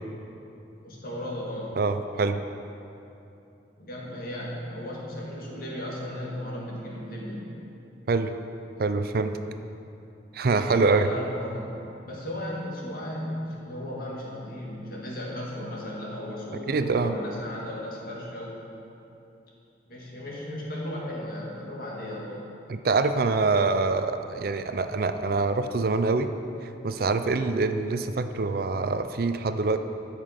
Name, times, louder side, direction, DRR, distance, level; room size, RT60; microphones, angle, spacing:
voice 1, 0.8-1.8 3.8-7.5 10.5-11.7 12.0-18.6 19.9-22.5, left 1 dB, 55° left, -3 dB, 2.0 m, -35 dB
voice 2, 1.8-2.4 8.1-8.3 8.8-9.4 10.3-11.1 16.7-17.1 22.7-26.3 26.8-29.8, right 3 dB, 55° right, 9 dB, 0.5 m, -25 dB
13.5 x 6.0 x 5.1 m, 2.9 s
head